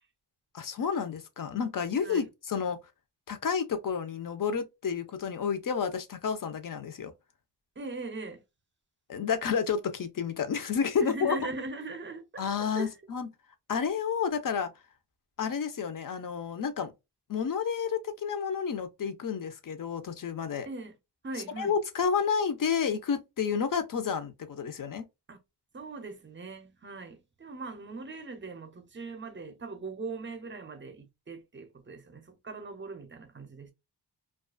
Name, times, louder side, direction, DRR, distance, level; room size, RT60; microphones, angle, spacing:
voice 1, 0.5-2.8 3.3-7.1 9.1-11.4 12.4-13.3 13.7-14.7 15.4-16.9 17.3-20.7 21.6-25.1, left 6 dB, 50° left, 0.5 m, -30 dB
voice 2, 7.8-8.4 11.0-13.0 20.7-20.9 21.2-21.8 25.3-25.4 25.7-33.7, right 3 dB, 30° right, 0.5 m, -40 dB
2.3 x 2.3 x 2.3 m
wide cardioid pair, 160°, 42 cm